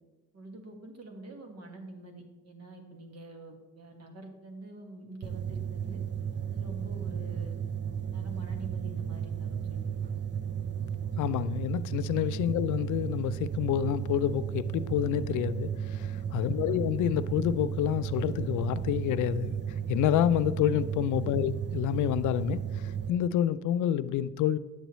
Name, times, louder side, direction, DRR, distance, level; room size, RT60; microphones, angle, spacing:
voice 1, 0.3-6.0 6.5-7.6 8.1-9.9 12.4-12.5 16.4-16.8 21.2-21.4, right 2 dB, 55° right, 1.6 m, -46 dB
sound 1, 5.2-23.1, right 8 dB, 40° right, 0.5 m, -34 dB
voice 2, 11.2-19.6 19.9-24.6, left 11 dB, 80° left, 0.4 m, -28 dB
9.3 x 7.9 x 3.1 m
cardioid pair, 90°, 30 cm